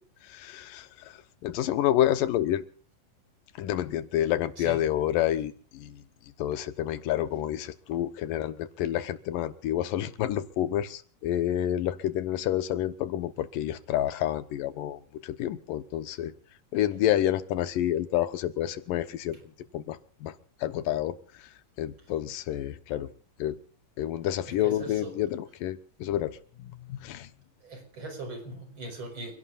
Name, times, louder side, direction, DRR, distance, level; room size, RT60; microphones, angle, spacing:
voice 1, 0.2-2.6 3.6-6.0 6.4-16.3 16.7-19.4 19.7-20.3 20.6-21.5 21.8-23.1 23.4-23.6 24.0-27.3, left 12 dB, 90° left, 12 dB, 2.8 m, -29 dB
voice 2, 24.6-25.1 27.6-29.4, right 2 dB, 35° right, 5 dB, 5.4 m, -39 dB
30.0 x 17.0 x 2.5 m, 0.42 s
omnidirectional pair, 3.8 m